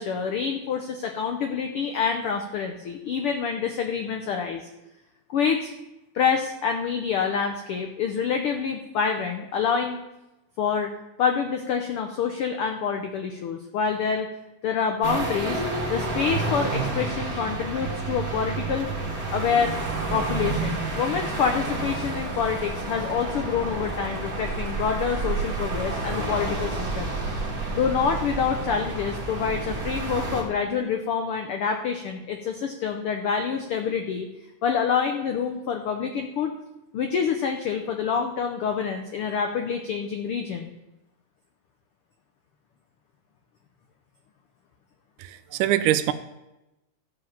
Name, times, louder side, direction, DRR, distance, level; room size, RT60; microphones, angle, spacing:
voice 1, 0.0-4.7 5.3-5.7 6.1-10.0 10.6-10.9 11.2-14.3 14.6-15.6 15.9-18.9 19.3-19.7 20.1-27.1 27.7-34.3 34.6-36.5 36.9-40.7, left 6 dB, 85° left, 5 dB, 1.2 m, -27 dB
sound 1, 15.0-30.4, right 3 dB, 30° right, 2.3 m, -30 dB
voice 2, 45.2-46.1, right 12 dB, 85° right, 12 dB, 2.1 m, -23 dB
13.5 x 5.0 x 7.3 m, 0.95 s
omnidirectional pair, 3.6 m